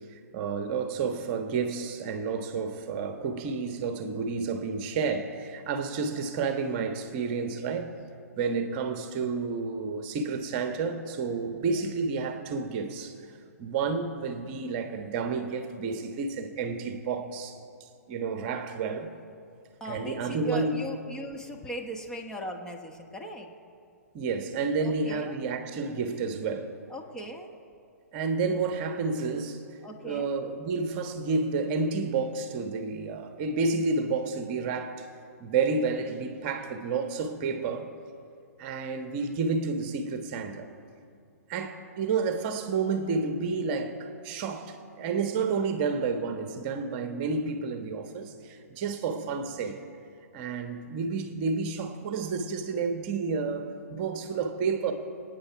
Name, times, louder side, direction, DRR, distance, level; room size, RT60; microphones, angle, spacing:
voice 1, 0.1-8.0 8.4-13.1 13.6-19.1 19.8-20.8 24.1-26.8 28.1-29.7 30.0-35.1 35.4-37.9 38.6-40.7 41.5-49.8 50.3-54.9, right 4 dB, 35° right, 1.3 m, -30 dB
voice 2, 19.8-23.5 24.8-25.4 26.9-27.5 29.8-30.3, equal, 5° left, 1.2 m, -38 dB
24.5 x 9.5 x 4.6 m
figure-of-eight pair, 120°, 9 cm